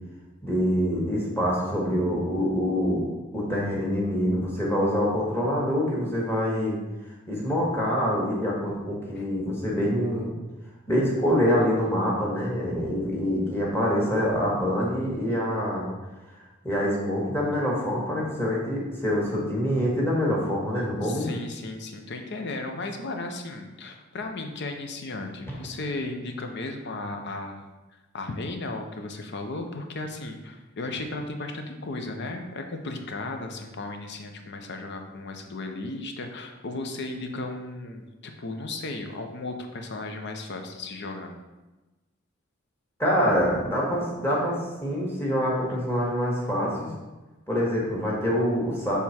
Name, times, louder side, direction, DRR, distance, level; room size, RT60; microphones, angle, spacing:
voice 1, 0.4-3.1 3.3-6.8 7.3-10.3 10.9-15.9 16.6-21.3 43.0-46.9 47.5-49.0, equal, 10° left, -4 dB, 1.6 m, -25 dB
voice 2, 21.0-27.7 28.1-41.3, left 2 dB, 55° left, 5 dB, 0.7 m, -35 dB
6.7 x 3.5 x 4.3 m, 1.1 s
head